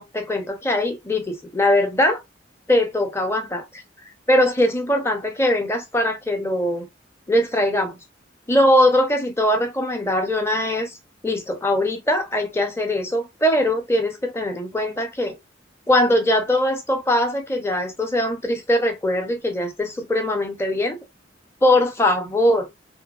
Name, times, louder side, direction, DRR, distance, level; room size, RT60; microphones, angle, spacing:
voice 1, 0.0-2.2 2.7-3.8 4.3-6.9 7.3-8.0 8.5-11.0 11.2-15.4 15.9-21.0 21.6-22.7, left 1 dB, 15° left, 0.6 m, -21 dB
3.2 x 2.1 x 2.3 m
head